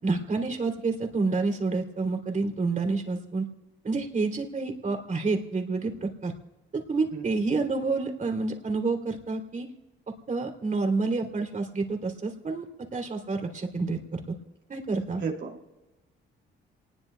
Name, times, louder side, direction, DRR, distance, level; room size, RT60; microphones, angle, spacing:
voice 1, 0.0-3.5 3.8-6.3 6.7-9.7 10.3-12.6 12.9-14.2 14.7-15.2, right 3 dB, 40° right, 3 dB, 2.9 m, -28 dB
voice 2, 15.2-15.8, right 5 dB, 65° right, 0 dB, 2.7 m, -34 dB
27.5 x 20.0 x 2.2 m, 1.1 s
cardioid pair, 90°, 20 cm